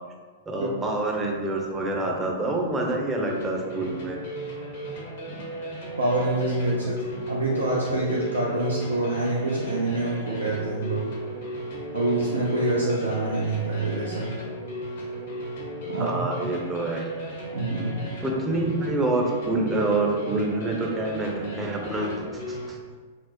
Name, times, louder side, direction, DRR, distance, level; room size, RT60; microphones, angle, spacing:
voice 1, 0.5-4.2 15.9-17.1 18.2-22.8, right 2 dB, 15° right, 0 dB, 0.6 m, -27 dB
sound 1, 3.3-22.7, right 1 dB, 60° left, 0.8 m, -36 dB
voice 2, 6.0-11.1 11.9-14.3 15.9-16.5 17.5-18.2, right 2 dB, 80° right, -4 dB, 0.5 m, -26 dB
4.1 x 2.0 x 2.9 m, 1.5 s
figure-of-eight pair, 105°, 0 cm